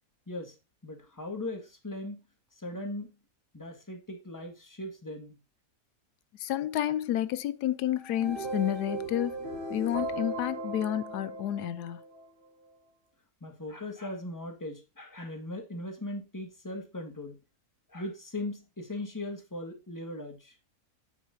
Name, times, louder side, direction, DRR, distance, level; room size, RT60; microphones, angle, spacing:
voice 1, 0.8-2.2 2.5-3.1 3.5-5.4 13.4-17.3 17.9-20.6, left 1 dB, 10° left, 1.8 m, -39 dB
voice 2, 6.4-9.4 9.7-12.0, left 12 dB, 90° left, 1.2 m, -30 dB
sound 1, 8.0-12.3, right 2 dB, 35° right, 2.7 m, -37 dB
9.1 x 7.5 x 2.7 m
omnidirectional pair, 1.7 m